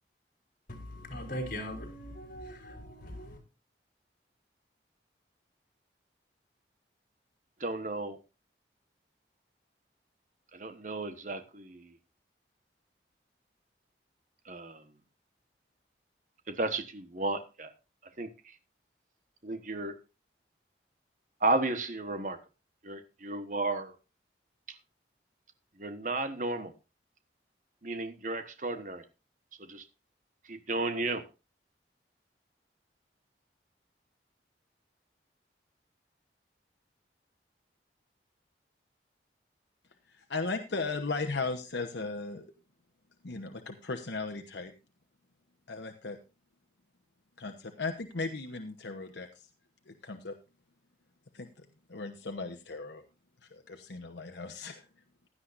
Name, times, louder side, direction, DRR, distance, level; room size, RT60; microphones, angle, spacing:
voice 1, 0.7-3.4, equal, 50° left, 4.0 m, -40 dB
voice 2, 7.6-8.2 10.5-11.9 14.4-14.8 16.5-17.7 18.2-18.5 19.4-20.0 21.4-22.4 22.8-24.0 25.8-26.7 27.8-29.0 29.6-29.8 30.5-31.2, right 2 dB, 45° right, 1.2 m, -33 dB
voice 3, 40.1-42.5 43.2-44.7 45.7-46.2 47.4-49.3 49.9-50.4 51.3-53.0 53.5-54.8, left 3 dB, 85° left, 1.1 m, -37 dB
16.0 x 11.5 x 2.6 m
head